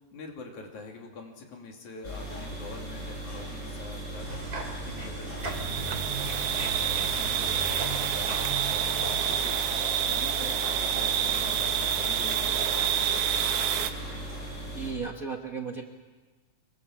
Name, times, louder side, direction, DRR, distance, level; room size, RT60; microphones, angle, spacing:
voice 1, 0.0-9.5 9.8-13.7, left 3 dB, 80° left, 1 dB, 4.2 m, -45 dB
sound 1, 2.0-14.9, right 1 dB, 25° left, 7.6 m, -38 dB
sound 2, 4.2-9.4, right 3 dB, 30° right, 3.8 m, -38 dB
sound 3, 5.4-13.9, right 9 dB, 65° right, 1.9 m, -28 dB
voice 2, 14.7-15.8, right 5 dB, 45° right, 2 dB, 1.1 m, -34 dB
24.5 x 22.5 x 7.2 m, 1.3 s
omnidirectional pair, 3.3 m